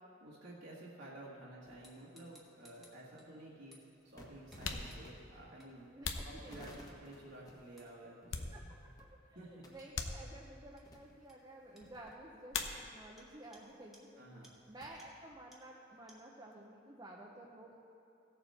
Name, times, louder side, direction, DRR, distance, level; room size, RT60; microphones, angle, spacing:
voice 1, 0.2-3.8 4.0-5.9 6.2-8.7 9.4-9.6 14.2-14.5, right 1 dB, 60° right, -6 dB, 1.8 m, -52 dB
sound 1, 1.6-15.3, equal, 20° left, 1.4 m, -60 dB
sound 2, 1.8-3.3 3.7-3.9 4.5-4.6 4.9-5.0 5.6-5.7 6.2-6.3 6.7-6.8 7.8-7.9 9.8-9.9 10.8-10.9 11.3-11.4 11.8-11.9 12.5-12.7 13.2-13.3 13.5-13.6 13.9-14.0 14.4-14.5 15.0-15.1 15.5-15.6 16.1-16.2, equal, ahead, 1.5 m, -62 dB
sound 3, 4.6-7.1 7.6-9.0 9.3-9.4 9.9-10.7 12.5-13.3 13.5-14.2 14.5-16.7, left 5 dB, 70° left, 0.8 m, -44 dB
voice 2, 5.9-6.5 8.5-9.1 9.4-14.3 14.7-17.8, right 1 dB, 20° right, -2 dB, 0.8 m, -53 dB
17.0 x 7.1 x 4.3 m, 2.8 s
head